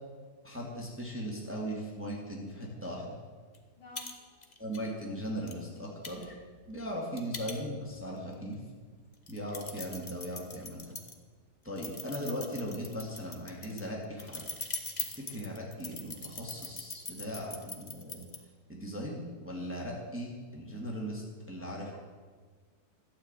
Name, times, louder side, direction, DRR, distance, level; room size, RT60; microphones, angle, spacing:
voice 1, 0.4-3.2 4.6-6.3 6.7-8.6 9.3-10.9 11.6-14.5 15.0-18.3 18.7-22.0, equal, 5° right, -2 dB, 1.9 m, -38 dB
sound 1, 3.5-3.6 4.0-4.1 4.4-4.8 5.5-5.6 6.0-8.0 8.5-8.6 9.1-11.1 11.8-18.4, left 4 dB, 40° left, 0.6 m, -41 dB
voice 2, 3.8-4.1 6.7-6.9 21.5-22.0, left 2 dB, 70° left, -2 dB, 3.5 m, -53 dB
12.0 x 7.4 x 8.8 m, 1.5 s
omnidirectional pair, 2.3 m